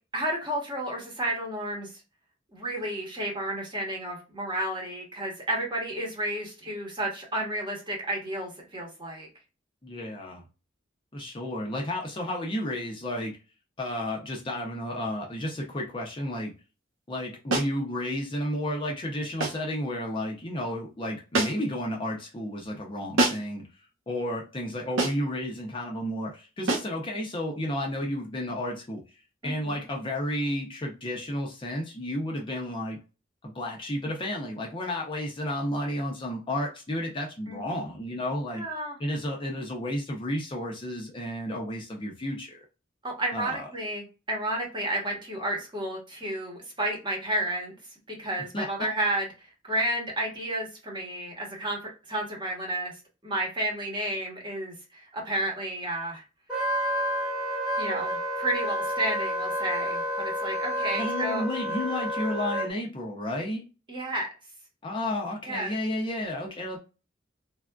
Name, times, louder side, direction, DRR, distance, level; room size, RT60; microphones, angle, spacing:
voice 1, 0.1-1.9 2.5-9.3 29.4-29.8 37.5-37.9 38.5-39.0 43.0-47.7 48.1-52.9 53.2-56.2 57.8-61.4 63.9-64.3 65.4-65.7, right 1 dB, 25° right, 0 dB, 1.1 m, -31 dB
voice 2, 9.8-10.4 11.1-13.3 13.8-16.5 17.1-23.6 24.1-29.0 29.4-33.0 33.4-38.6 39.0-42.6 43.3-43.6 48.5-48.7 60.9-63.6 64.8-66.8, left 1 dB, 25° left, 0 dB, 0.6 m, -32 dB
sound 1, 17.5-17.8 19.4-19.7 21.3-21.8 23.2-23.6 25.0-25.3 26.7-27.0, right 2 dB, 85° right, 0.8 m, -27 dB
Wind instrument woodwind instrument, 56.5-62.7, equal, 5° right, 1.1 m, -30 dB
3.4 x 2.4 x 2.2 m, 0.31 s
head